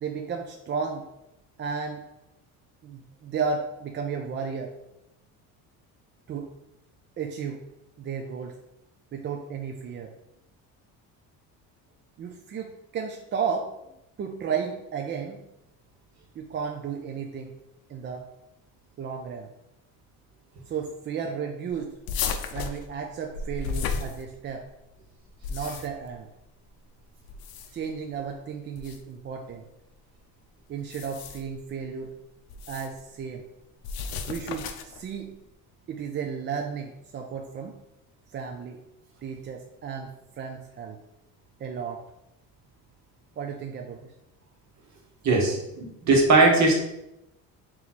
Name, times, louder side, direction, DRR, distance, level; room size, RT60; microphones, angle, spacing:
voice 1, 0.0-1.1 1.6-2.1 2.8-4.7 6.3-6.5 7.2-7.7 8.0-8.6 9.1-10.1 12.2-13.7 14.2-15.4 16.4-17.6 17.9-18.3 19.0-19.5 20.7-21.9 22.5-24.7 25.5-26.3 27.7-29.7 30.7-32.2 32.7-33.5 34.3-35.4 35.9-37.8 38.3-38.8 39.2-41.0 41.6-42.1 43.4-44.1 45.3-45.5, right 6 dB, 30° right, 3 dB, 0.4 m, -33 dB
sound 1, 22.1-24.7 25.3-26.1 27.2-27.9 28.8-29.0 30.8-31.6 32.5-33.0 33.8-35.0, left 5 dB, 70° left, 0.6 m, -33 dB
voice 2, 45.2-46.7, right 3 dB, 50° right, 0 dB, 1.2 m, -19 dB
3.4 x 2.9 x 4.1 m, 0.88 s
cardioid pair, 105°, 37 cm